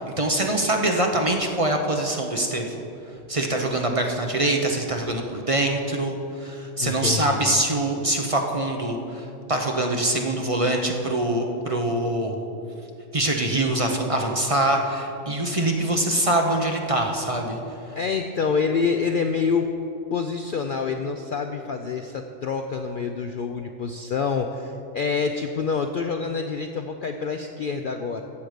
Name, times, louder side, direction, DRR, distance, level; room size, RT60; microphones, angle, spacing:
voice 1, 0.0-2.8 3.3-6.1 6.4-12.4 13.1-17.6, right 1 dB, 30° right, 2 dB, 0.8 m, -24 dB
voice 2, 6.8-7.6 17.9-19.7 20.1-28.2, left 5 dB, 60° left, 5 dB, 0.6 m, -27 dB
14.0 x 7.8 x 5.1 m, 2.7 s
omnidirectional pair, 1.3 m